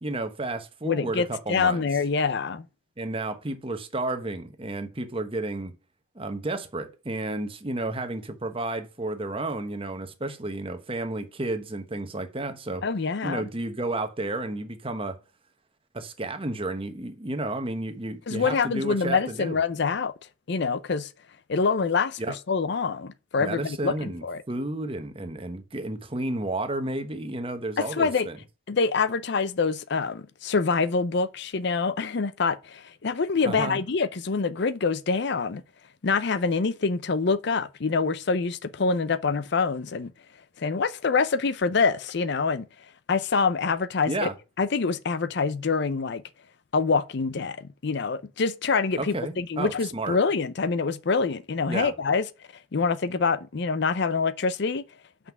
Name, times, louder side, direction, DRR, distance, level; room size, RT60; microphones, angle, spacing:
voice 1, 0.0-1.9 3.0-5.7 6.1-12.8 13.2-15.2 15.9-19.6 22.2-22.3 23.4-28.4 33.4-33.8 44.1-44.3 49.0-50.2 51.7-51.9, right 2 dB, 25° right, 1.0 m, -32 dB
voice 2, 0.8-2.6 12.8-13.4 18.3-20.1 20.5-21.1 21.5-24.4 27.8-28.3 28.7-35.6 36.0-40.1 40.6-42.7 43.1-44.3 44.6-46.2 46.7-47.6 47.8-52.3 52.7-54.8, left 4 dB, 55° left, 0.5 m, -25 dB
5.9 x 5.6 x 5.9 m
head